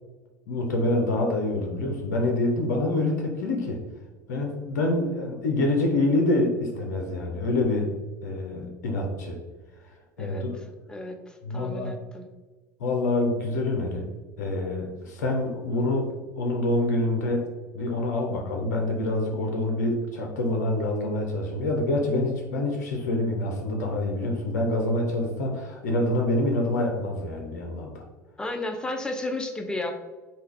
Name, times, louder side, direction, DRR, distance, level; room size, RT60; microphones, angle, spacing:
voice 1, 0.5-3.8 4.3-7.9 8.2-9.4 10.2-10.6 11.4-11.9 12.8-16.1 16.4-17.4 17.7-28.0, left 2 dB, 65° left, 1 dB, 0.5 m, -26 dB
voice 2, 10.2-12.3 28.4-30.1, left 2 dB, 10° left, 5 dB, 0.4 m, -33 dB
3.3 x 2.2 x 3.2 m, 1.3 s
figure-of-eight pair, 70°, 10 cm